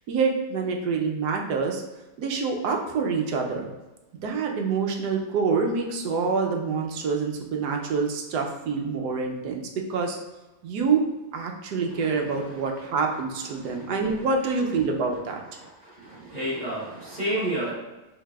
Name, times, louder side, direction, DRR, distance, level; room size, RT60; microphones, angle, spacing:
voice 1, 0.1-1.8 2.2-3.7 4.2-9.6 9.9-10.2 10.6-11.0 11.3-15.4, right 5 dB, 80° right, 2 dB, 1.3 m, -26 dB
voice 2, 15.6-17.7, right 1 dB, 25° right, -7 dB, 1.4 m, -30 dB
6.5 x 3.4 x 2.3 m, 1.1 s
omnidirectional pair, 1.8 m